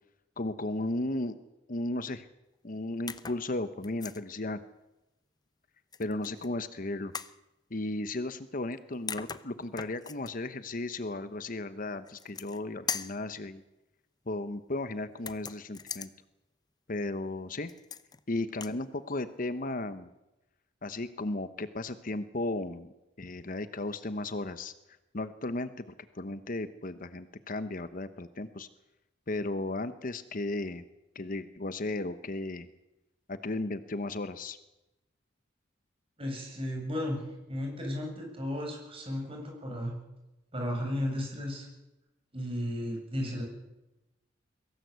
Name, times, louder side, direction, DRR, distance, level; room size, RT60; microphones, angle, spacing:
voice 1, 0.4-1.3 1.7-2.3 2.6-4.6 6.0-7.1 7.7-13.6 14.3-16.1 16.9-17.7 18.3-20.1 20.8-22.9 23.2-24.7 25.1-25.7 26.0-28.7 29.3-30.8 31.1-32.7 33.3-34.6, left 2 dB, 45° left, 12 dB, 1.0 m, -35 dB
sound 1, 3.1-3.4 3.8-4.2 5.9-6.5 7.1-7.4 8.7-8.8 9.1-10.3 12.1-12.6 12.9-13.2 15.2-16.1 17.7-18.2 18.5-18.8, left 6 dB, 20° left, 0.7 m, -39 dB
voice 2, 36.2-37.2 37.5-40.0 40.5-41.7 42.3-43.4, left 1 dB, 30° right, 1 dB, 7.8 m, -34 dB
23.0 x 17.5 x 8.1 m, 0.96 s
head